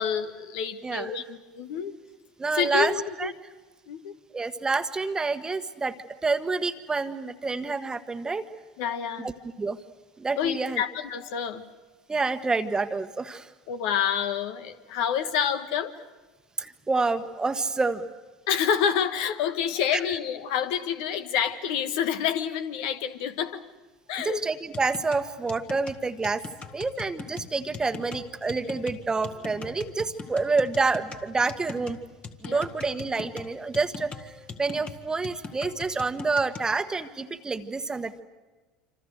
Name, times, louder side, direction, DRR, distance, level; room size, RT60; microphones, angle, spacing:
voice 1, 0.0-2.0 2.6-3.3 3.9-4.1 8.8-9.3 10.4-11.7 13.7-15.9 18.5-23.6 24.1-24.4 32.4-32.6, left 8 dB, 65° left, 9 dB, 1.4 m, -28 dB
voice 2, 2.4-3.3 4.3-6.0 6.2-8.5 9.2-9.3 9.6-9.8 10.2-10.8 12.1-13.5 16.6-18.1 19.9-20.0 24.2-26.4 26.7-32.0 32.4-34.3 34.6-38.2, right 3 dB, 20° right, 10 dB, 1.4 m, -28 dB
sound 1, 24.7-36.7, left 5 dB, 30° left, 1.9 m, -41 dB
27.0 x 26.5 x 6.4 m, 1.2 s
hypercardioid pair, 75°, 4 cm